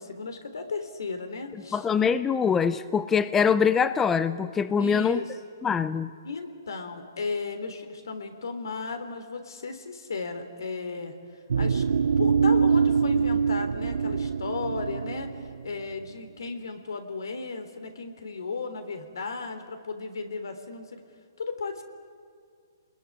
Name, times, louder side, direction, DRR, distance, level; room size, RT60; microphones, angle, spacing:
voice 1, 0.0-1.9 4.8-5.7 6.2-11.1 11.6-11.8 12.2-15.3 15.6-21.0 21.4-21.8, left 4 dB, 80° left, 8 dB, 3.4 m, -35 dB
voice 2, 1.7-5.2 5.6-6.1, left 6 dB, 10° left, 14 dB, 0.6 m, -23 dB
sound 1, 11.5-15.7, right 6 dB, 80° right, 0.6 m, -24 dB
28.5 x 21.0 x 9.8 m, 2.2 s
hypercardioid pair, 145°, 2 cm